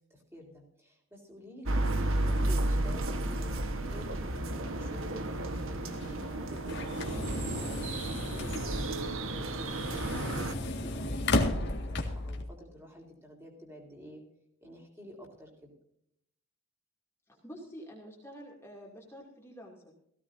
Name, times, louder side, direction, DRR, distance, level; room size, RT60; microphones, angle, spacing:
voice 1, 0.1-14.2 14.6-15.7, equal, 10° right, 1 dB, 3.8 m, -50 dB
sound 1, 1.7-10.5, right 1 dB, 65° right, 1.2 m, -32 dB
sound 2, 5.8-12.4, left 2 dB, 50° left, 1.9 m, -34 dB
voice 2, 17.3-19.9, equal, 10° left, -2 dB, 2.5 m, -48 dB
18.0 x 16.0 x 2.7 m, 0.72 s
head